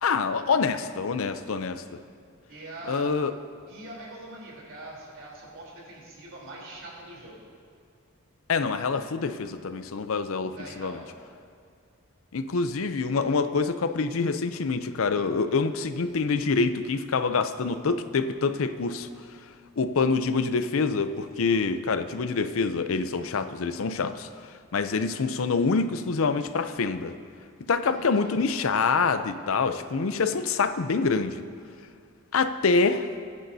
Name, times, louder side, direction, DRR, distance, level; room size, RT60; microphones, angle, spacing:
voice 1, 0.0-1.8 2.9-3.3 8.5-11.0 12.3-19.1 19.8-24.3 24.7-27.1 27.7-31.4 32.3-33.1, left 4 dB, 80° left, 10 dB, 0.6 m, -26 dB
voice 2, 2.5-3.1 3.7-7.5 10.5-11.0 27.8-28.3, right 2 dB, 65° right, -4 dB, 3.6 m, -42 dB
21.5 x 10.0 x 2.7 m, 2.2 s
head